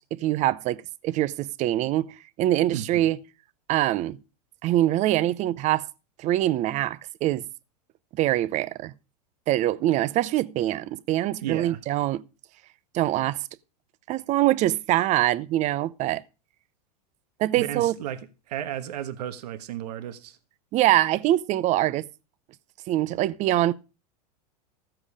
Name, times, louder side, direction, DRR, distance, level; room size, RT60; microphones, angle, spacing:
voice 1, 0.0-3.2 3.7-4.2 4.6-5.9 6.2-7.5 8.1-8.9 9.5-12.2 12.9-13.5 14.1-16.2 17.4-17.9 20.7-22.1 22.9-23.7, right 14 dB, 35° right, 0.6 m, -24 dB
voice 2, 2.7-3.1 11.4-11.8 17.6-20.4, right 11 dB, 75° right, 1.3 m, -34 dB
14.5 x 7.8 x 4.9 m
supercardioid pair, 130°, 21 cm